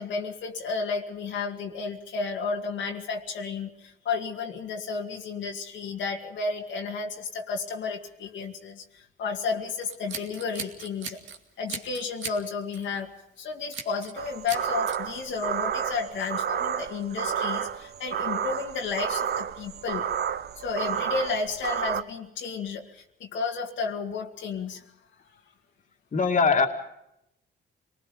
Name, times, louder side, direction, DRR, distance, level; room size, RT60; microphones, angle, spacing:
voice 1, 0.0-11.2 11.6-20.1 20.6-24.8, left 4 dB, 75° left, 1 dB, 2.2 m, -32 dB
Scissors, 9.8-11.4 11.7-12.4 12.7-13.0 13.7-14.2 14.5-15.0, right 6 dB, 70° right, 2.4 m, -37 dB
sound 1, 14.2-22.0, right 8 dB, 55° right, 0.8 m, -31 dB
voice 2, 26.1-26.7, left 5 dB, 40° left, 2 dB, 2.5 m, -21 dB
26.5 x 19.5 x 5.2 m, 0.82 s
cardioid pair, 90°, 20 cm